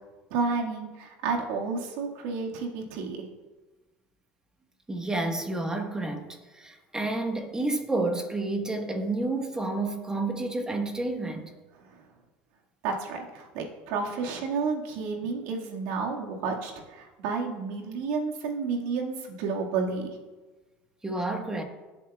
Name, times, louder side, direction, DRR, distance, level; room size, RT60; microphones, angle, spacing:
voice 1, 0.3-3.3 12.8-20.1, right 4 dB, 70° right, 1.9 m, -31 dB
voice 2, 4.9-11.5 21.0-21.6, right 2 dB, 15° right, 1.4 m, -30 dB
16.5 x 7.9 x 2.4 m
supercardioid pair, 100°, 5 cm